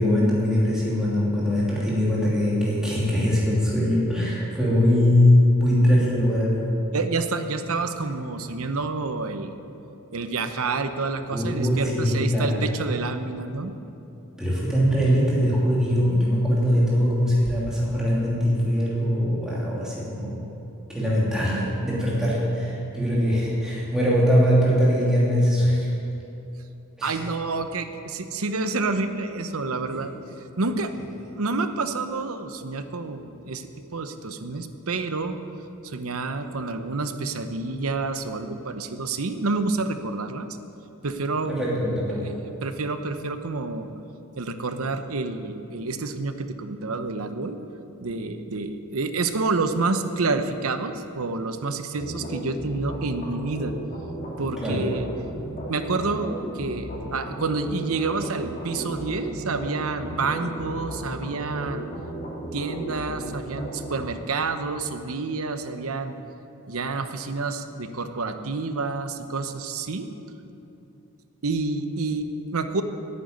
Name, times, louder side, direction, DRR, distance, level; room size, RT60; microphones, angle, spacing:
voice 1, 0.0-6.7 11.3-12.6 14.4-20.5 20.9-25.9 27.0-27.2 29.9-30.0 41.5-42.3 54.6-54.8, equal, 5° right, -7 dB, 2.7 m, -22 dB
voice 2, 6.9-9.6 10.1-13.7 27.0-30.1 30.6-30.9 31.2-35.4 35.8-40.5 41.0-41.6 42.1-43.9 44.4-47.6 48.0-53.8 54.4-55.1 55.7-61.9 62.5-66.2 66.7-70.1 71.4-72.8, right 3 dB, 75° right, 9 dB, 0.9 m, -28 dB
sound 1, 52.0-64.1, right 1 dB, 35° left, 2.4 m, -35 dB
10.5 x 9.2 x 9.3 m, 2.8 s
head